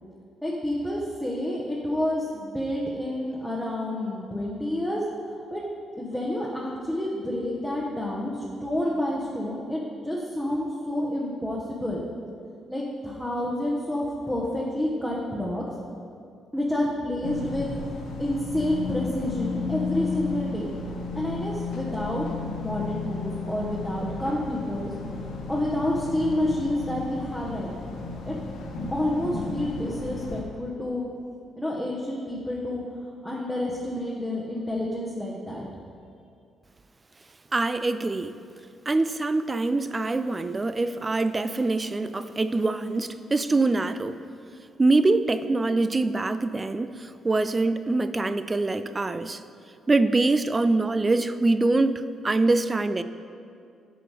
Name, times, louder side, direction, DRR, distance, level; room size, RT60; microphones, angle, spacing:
voice 1, 0.4-5.0 5.5-5.6 6.0-12.0 12.7-15.6 16.5-17.7 18.2-20.7 21.1-22.3 22.6-24.9 25.5-27.7 28.2-28.4 28.9-31.0 31.6-32.8 33.2-35.7, left 1 dB, ahead, -5 dB, 0.9 m, -29 dB
sound 1, 17.2-30.4, left 4 dB, 80° left, 0.9 m, -34 dB
voice 2, 37.5-38.3 38.9-44.2 44.8-49.4 49.9-53.0, right 2 dB, 25° right, 12 dB, 0.3 m, -24 dB
7.6 x 5.0 x 4.8 m, 2.4 s
cardioid pair, 90°, 0 cm